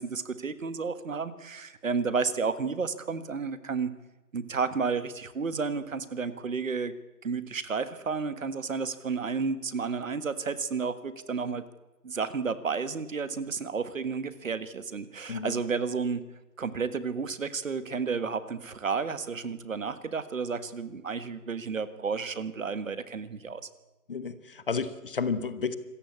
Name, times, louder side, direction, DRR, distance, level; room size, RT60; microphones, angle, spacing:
voice 1, 0.0-3.9 4.3-6.9 7.2-11.6 12.0-16.2 16.6-23.7, right 5 dB, 55° right, 14 dB, 1.7 m, -31 dB
voice 2, 24.1-25.8, left 5 dB, 35° left, 13 dB, 1.2 m, -31 dB
26.0 x 14.5 x 8.5 m, 1.1 s
figure-of-eight pair, 155°, 48 cm